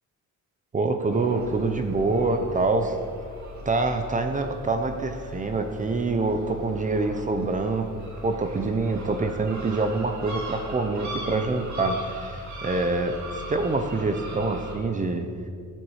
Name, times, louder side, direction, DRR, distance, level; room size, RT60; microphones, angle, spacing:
voice 1, 0.7-3.0 3.6-7.9 8.2-15.3, right 3 dB, 25° right, 6 dB, 0.7 m, -26 dB
sound 1, 1.1-14.8, equal, 60° right, 2.1 m, -39 dB
16.0 x 7.8 x 4.8 m, 2.3 s
cardioid pair, 175°, 32 cm